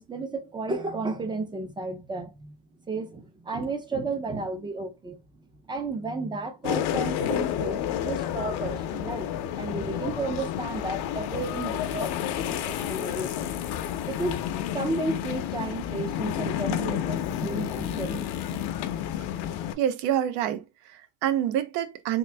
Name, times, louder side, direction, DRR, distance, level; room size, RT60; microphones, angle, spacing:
voice 1, 0.0-2.6 2.8-5.2 5.7-13.7 14.0-14.4 14.7-18.6, right 3 dB, 10° right, 0.3 m, -33 dB
sound 1, 6.6-19.7, left 10 dB, 70° left, 0.6 m, -30 dB
voice 2, 19.8-22.2, right 10 dB, 85° right, 0.7 m, -27 dB
3.7 x 2.5 x 3.3 m
cardioid pair, 150°, 41 cm